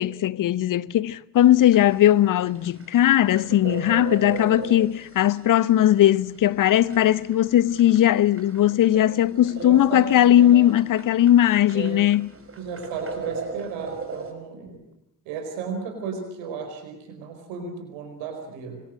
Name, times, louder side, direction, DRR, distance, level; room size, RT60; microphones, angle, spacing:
voice 1, 0.0-12.3, left 12 dB, 40° left, 0.8 m, -19 dB
sound 1, 1.4-14.3, right 4 dB, 25° right, 5.6 m, -37 dB
voice 2, 9.5-10.1 10.4-10.7 11.7-12.0 12.6-14.8 15.2-18.8, right 6 dB, 65° right, 4.8 m, -34 dB
25.5 x 21.5 x 7.9 m
figure-of-eight pair, 40°, 49 cm